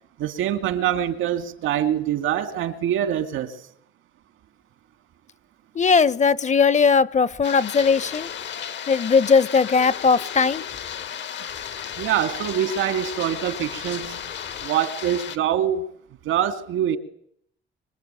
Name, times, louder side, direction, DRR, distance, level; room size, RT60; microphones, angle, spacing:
voice 1, 0.2-3.6 12.0-14.3 14.6-15.9 16.2-17.0, right 10 dB, 85° right, 2.4 m, -24 dB
voice 2, 5.7-8.3 8.9-10.6, left 5 dB, 35° left, 1.0 m, -19 dB
sound 1, 7.4-15.4, left 8 dB, 65° left, 1.7 m, -34 dB
sound 2, 7.8-14.7, left 8 dB, 80° left, 3.7 m, -43 dB
25.0 x 23.5 x 9.2 m
cardioid pair, 90°, 20 cm